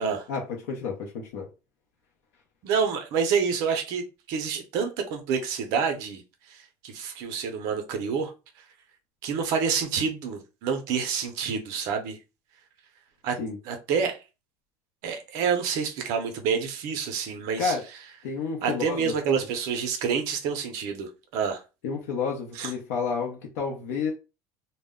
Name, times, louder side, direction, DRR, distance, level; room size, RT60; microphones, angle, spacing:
voice 1, 0.0-1.5 13.4-13.6 17.6-17.8 18.2-19.4 21.8-24.1, left 5 dB, 85° left, 0.7 m, -31 dB
voice 2, 2.6-6.2 6.5-8.3 9.2-12.2 13.2-13.4 13.7-14.2 15.0-17.7 18.6-21.6 22.6-22.7, right 6 dB, 50° right, 0.5 m, -28 dB
2.1 x 2.1 x 3.5 m
cardioid pair, 180°, 8 cm